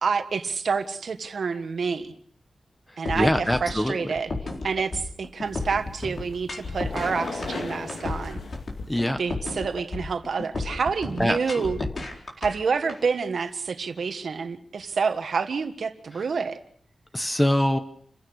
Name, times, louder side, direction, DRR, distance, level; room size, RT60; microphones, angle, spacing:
voice 1, 0.0-2.1 3.0-4.3 4.6-8.4 9.2-11.8 12.4-16.6, right 5 dB, 70° right, 8 dB, 1.6 m, -28 dB
sound 1, 3.1-13.0, left 3 dB, 50° left, 4.2 m, -33 dB
voice 2, 3.1-4.1 8.9-9.2 11.2-11.7 17.1-17.8, left 1 dB, 10° left, 8 dB, 1.2 m, -23 dB
sound 2, 5.4-9.2, left 3 dB, 85° left, 3.1 m, -38 dB
28.5 x 16.0 x 6.5 m, 0.64 s
wide cardioid pair, 125°, 0 cm